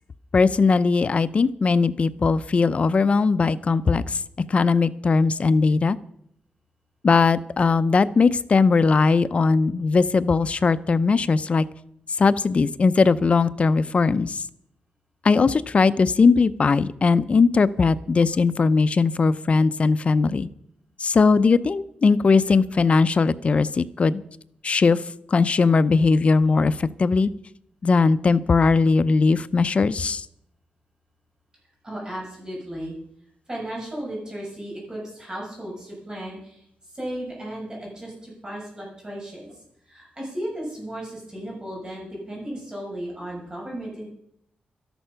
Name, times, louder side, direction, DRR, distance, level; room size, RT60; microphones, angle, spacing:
voice 1, 0.3-4.2 4.5-6.0 7.0-11.7 12.1-14.4 15.2-20.5 21.0-24.2 24.6-25.0 25.3-27.3 27.8-30.2, left 4 dB, 40° left, 13 dB, 0.6 m, -19 dB
voice 2, 31.8-32.9 33.5-36.6 36.9-39.6 39.9-44.1, right 1 dB, 25° right, -3 dB, 6.6 m, -35 dB
13.0 x 11.5 x 5.7 m, 0.74 s
wide cardioid pair, 110°, 3 cm